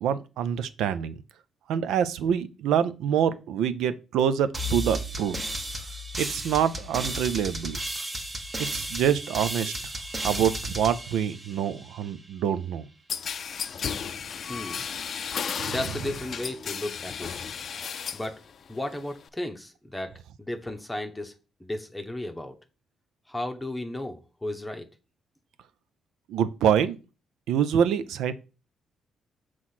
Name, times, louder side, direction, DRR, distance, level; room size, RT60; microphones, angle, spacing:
voice 1, 0.0-1.1 1.7-5.4 6.2-7.8 8.7-9.7 10.2-12.9 15.6-15.7 26.3-27.0 27.5-28.3, right 8 dB, 85° right, 0.5 m, -26 dB
sound 1, 4.5-12.0, right 1 dB, 25° right, 1.2 m, -34 dB
sound 2, 13.1-18.3 18.7-19.3, left 7 dB, 55° left, 0.4 m, -34 dB
voice 2, 14.5-14.8 15.7-17.3 18.1-18.4 18.7-21.3 21.6-22.5 23.3-24.9, left 1 dB, 10° left, 0.9 m, -34 dB
6.1 x 3.1 x 5.7 m
cardioid pair, 90°, 0 cm